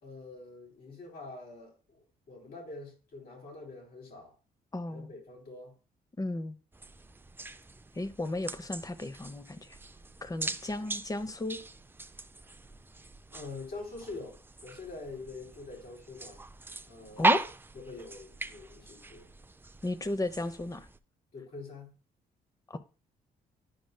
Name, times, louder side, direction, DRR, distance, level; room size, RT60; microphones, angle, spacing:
voice 1, 0.0-4.3 4.9-5.7 10.7-10.9 13.3-14.4 14.6-16.4 16.9-19.3 21.3-21.9, left 3 dB, 65° left, 3.0 m, -45 dB
voice 2, 4.7-5.1 6.2-6.6 7.9-9.8 10.2-11.6 17.2-17.4 19.8-20.9 22.7-22.8, left 2 dB, 20° left, 0.8 m, -34 dB
sound 1, 6.7-21.0, right 2 dB, 15° right, 0.4 m, -38 dB
10.5 x 5.2 x 2.2 m
supercardioid pair, 70°, 17 cm